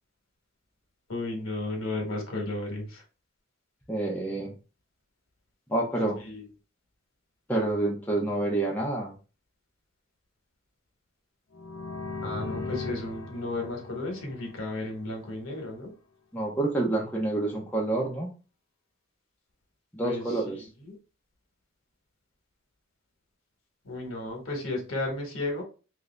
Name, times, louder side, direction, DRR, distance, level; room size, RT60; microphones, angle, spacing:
voice 1, 1.1-3.0 6.2-6.4 12.2-15.9 20.0-20.2 20.8-21.0 23.8-25.6, left 2 dB, 65° left, 1 dB, 1.2 m, -33 dB
voice 2, 3.9-4.5 5.7-6.2 7.5-9.1 16.3-18.3 19.9-20.6, right 2 dB, 10° left, -2 dB, 0.7 m, -28 dB
sound 1, 11.5-15.3, left 3 dB, 50° left, 0.9 m, -38 dB
3.2 x 2.5 x 3.2 m, 0.34 s
head